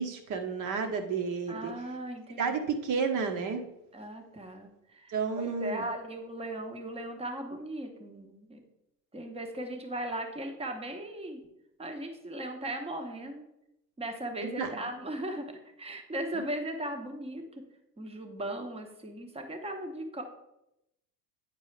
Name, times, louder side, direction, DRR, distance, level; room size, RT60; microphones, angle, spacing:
voice 1, 0.0-1.7 2.4-3.6 5.1-5.9 14.4-14.7 16.3-16.4, right 5 dB, 40° right, 6 dB, 1.2 m, -31 dB
voice 2, 1.5-2.6 3.9-8.6 9.1-11.4 11.8-13.4 14.0-15.4 15.8-17.4 18.0-20.2, right 1 dB, 10° right, 4 dB, 1.1 m, -37 dB
9.2 x 4.6 x 3.3 m, 0.86 s
hypercardioid pair, 95°, 49 cm